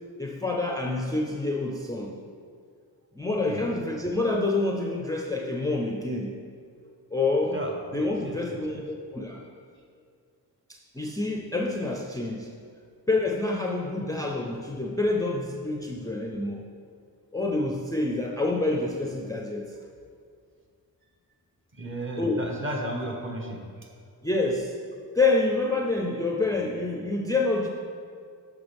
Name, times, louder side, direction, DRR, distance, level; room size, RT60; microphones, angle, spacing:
voice 1, 0.2-2.1 3.1-6.3 7.1-7.6 7.9-9.4 10.7-12.5 13.1-16.6 17.3-19.6 22.2-22.4 24.2-24.7 25.1-27.7, left 2 dB, 10° left, 0 dB, 0.5 m, -27 dB
voice 2, 7.5-8.8 21.7-23.9, right 1 dB, 30° right, 2 dB, 1.1 m, -35 dB
10.0 x 6.0 x 3.4 m, 2.3 s
wide cardioid pair, 130°, 38 cm